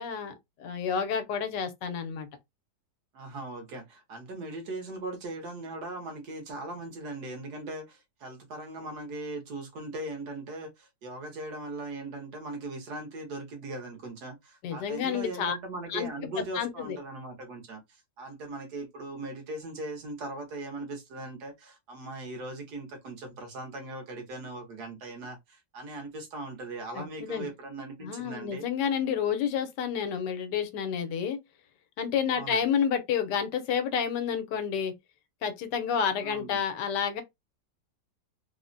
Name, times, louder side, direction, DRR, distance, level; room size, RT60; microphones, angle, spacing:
voice 1, 0.0-2.3 14.6-15.6 15.9-16.1 16.5-17.0 26.9-27.0 27.3-27.5 28.0-31.4 32.0-34.9 35.4-37.2, left 7 dB, 85° left, 1.3 m, -29 dB
voice 2, 3.1-28.6 32.3-32.6 36.2-36.6, right 2 dB, 70° right, 1.5 m, -39 dB
3.5 x 2.1 x 2.5 m
omnidirectional pair, 1.8 m